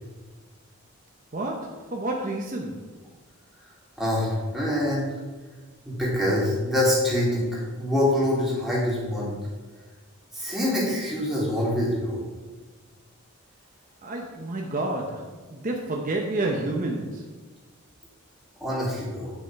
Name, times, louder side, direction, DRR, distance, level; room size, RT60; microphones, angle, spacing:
voice 1, 1.3-2.9 14.0-17.3, right 2 dB, 40° right, 1 dB, 0.8 m, -29 dB
voice 2, 4.0-5.1 5.8-9.3 10.3-12.2 18.6-19.3, left 1 dB, ahead, -7 dB, 2.8 m, -25 dB
9.6 x 6.2 x 4.6 m, 1.3 s
head